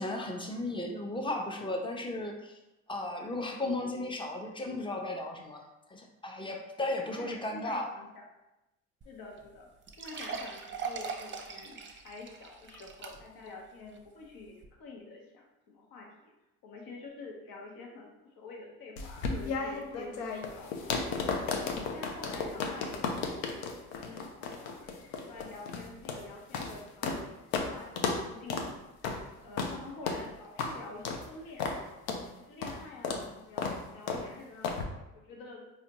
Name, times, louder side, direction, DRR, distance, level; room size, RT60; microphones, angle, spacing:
voice 1, 0.0-2.6 2.9-5.6 5.9-7.9, left 2 dB, 10° left, 2 dB, 0.7 m, -35 dB
voice 2, 7.0-8.3 9.0-9.7 10.0-11.8 12.0-16.3 16.6-21.1 21.5-24.9 25.3-28.7 29.4-31.7 32.3-34.8 35.1-35.6, left 3 dB, 60° left, 0 dB, 1.0 m, -48 dB
sound 1, 9.0-9.1 9.4-9.5 9.9-13.5 13.9-14.0 14.6-14.7, right 5 dB, 30° right, 0.7 m, -40 dB
sound 2, 19.0-27.2 27.5-27.7 28.0-28.2 28.5-28.7 29.0-29.2 29.6-29.7 30.1-30.2 30.6-30.7 31.0-31.2 31.6-31.8 32.1-32.2 32.6-32.8 33.0-33.2 33.6-33.8 34.1-34.2 34.6-34.8, left 4 dB, 85° left, 0.6 m, -33 dB
4.1 x 2.8 x 2.9 m, 0.96 s
hypercardioid pair, 65°, 40 cm